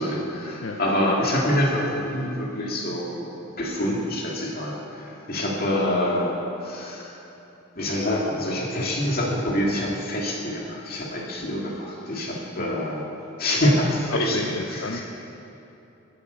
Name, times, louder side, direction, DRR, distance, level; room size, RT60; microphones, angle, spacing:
voice 1, 0.0-6.3 6.6-7.2 7.8-13.0 13.4-14.4 14.7-15.0, left 1 dB, 45° left, -2 dB, 2.3 m, -26 dB
voice 2, 2.6-2.9 12.1-12.7 14.1-15.0, left 2 dB, 65° left, 2 dB, 0.7 m, -34 dB
15.0 x 8.7 x 6.9 m, 2.9 s
head